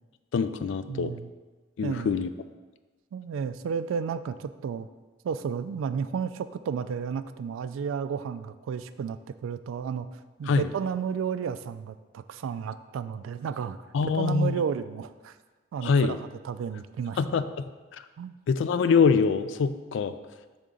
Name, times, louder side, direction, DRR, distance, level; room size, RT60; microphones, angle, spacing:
voice 1, 0.3-1.1 1.8-2.3 10.5-10.6 13.9-14.5 15.8-16.2 17.2-17.7 18.5-20.1, left 5 dB, 65° left, 11 dB, 0.3 m, -24 dB
voice 2, 0.9-1.3 1.8-2.2 3.1-4.9 5.2-13.8 14.1-15.3 15.7-17.2 18.2-18.4, right 6 dB, 90° right, 12 dB, 0.3 m, -32 dB
6.9 x 3.6 x 3.8 m, 1.3 s
head